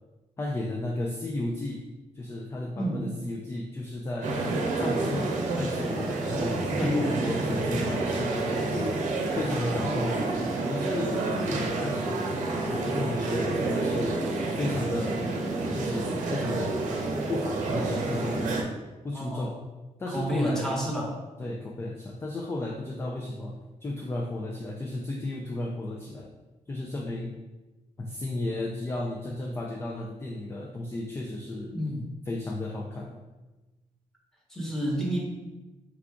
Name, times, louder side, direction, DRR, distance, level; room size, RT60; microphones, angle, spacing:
voice 1, 0.4-1.8 2.1-4.4 4.8-8.7 9.3-10.3 10.7-12.3 12.7-14.3 14.5-15.3 15.7-16.8 17.3-18.7 19.0-19.6 20.0-20.8 21.4-23.6 23.8-26.3 26.7-27.4 28.0-31.8 32.2-33.2, left 2 dB, 20° left, 0 dB, 0.4 m, -33 dB
voice 2, 2.8-3.1 6.8-7.2 19.1-19.5 20.1-21.1 31.7-32.0 34.5-35.2, equal, 5° left, -3 dB, 1.1 m, -29 dB
sound 1, 4.2-18.6, right 2 dB, 85° right, 0.7 m, -29 dB
4.6 x 2.4 x 3.6 m, 1.1 s
cardioid pair, 115°, 13 cm